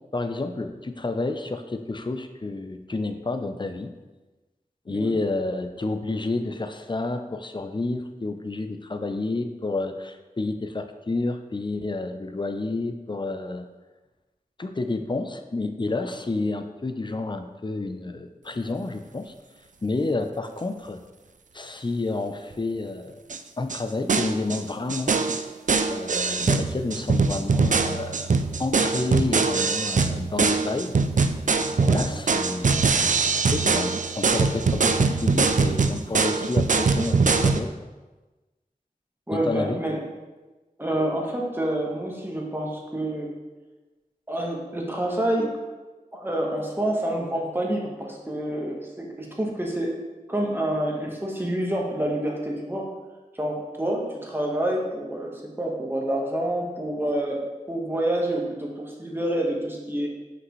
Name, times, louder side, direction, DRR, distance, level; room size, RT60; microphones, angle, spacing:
voice 1, 0.1-3.9 4.9-13.7 14.6-19.3 19.8-21.0 21.5-23.2 23.6-25.2 25.9-28.3 28.6-30.9 31.8-32.7 33.0-37.9 39.3-39.8, left 2 dB, 30° left, 7 dB, 0.5 m, -30 dB
sound 1, 23.3-23.4 23.7-23.8 24.1-24.6 24.9-37.6, right 4 dB, 60° right, 0.4 m, -22 dB
voice 2, 39.3-40.0 40.8-43.4 44.3-45.5 46.1-49.9 50.3-52.9 53.3-57.4 57.7-60.1, right 1 dB, 15° right, -1 dB, 1.3 m, -28 dB
5.8 x 5.2 x 3.1 m, 1.2 s
wide cardioid pair, 40°, 15 cm